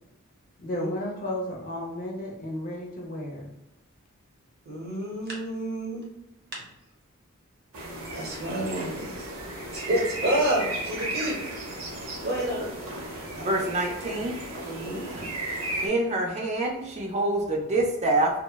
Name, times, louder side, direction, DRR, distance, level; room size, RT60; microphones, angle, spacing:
voice 1, 0.6-3.5, left 1 dB, 40° left, -2 dB, 0.6 m, -33 dB
voice 2, 4.6-6.0 8.1-9.3 9.7-11.4 12.2-12.7 14.6-15.0, right 1 dB, 50° right, -3 dB, 0.9 m, -29 dB
sound 1, 7.7-15.9, right 1 dB, 75° right, 0.7 m, -35 dB
voice 3, 13.1-14.4 15.1-15.3 15.8-18.3, right 2 dB, 30° right, 0 dB, 0.5 m, -26 dB
3.0 x 2.2 x 2.2 m, 0.89 s
head